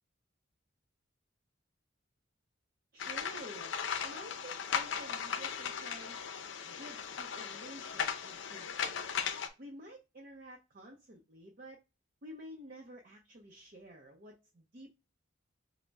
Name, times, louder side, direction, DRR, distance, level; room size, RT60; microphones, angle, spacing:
voice 1, 2.9-3.7 4.0-6.3 6.7-9.0 9.6-11.8 12.2-14.9, right 1 dB, 45° right, 0.6 m, -51 dB
sound 1, 3.0-9.5, left 7 dB, 70° left, 0.5 m, -37 dB
5.2 x 2.0 x 3.4 m
head